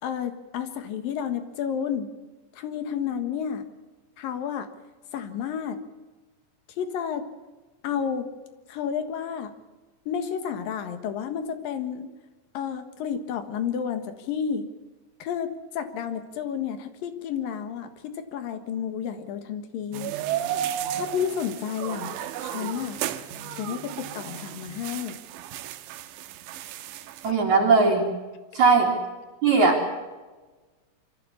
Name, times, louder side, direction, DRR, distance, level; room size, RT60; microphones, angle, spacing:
voice 1, 0.0-2.1 2.6-3.7 4.2-4.7 5.1-5.8 6.8-7.2 7.8-8.3 8.7-9.5 10.1-12.1 12.5-14.7 15.2-20.2 20.9-23.0 23.6-25.2, left 8 dB, 60° left, 9 dB, 2.8 m, -31 dB
sound 1, 19.9-27.3, right 11 dB, 80° right, 3.2 m, -33 dB
voice 2, 27.2-28.1 28.5-28.9 29.4-29.8, right 4 dB, 45° right, 1 dB, 3.3 m, -19 dB
24.5 x 14.5 x 8.4 m, 1.3 s
omnidirectional pair, 5.4 m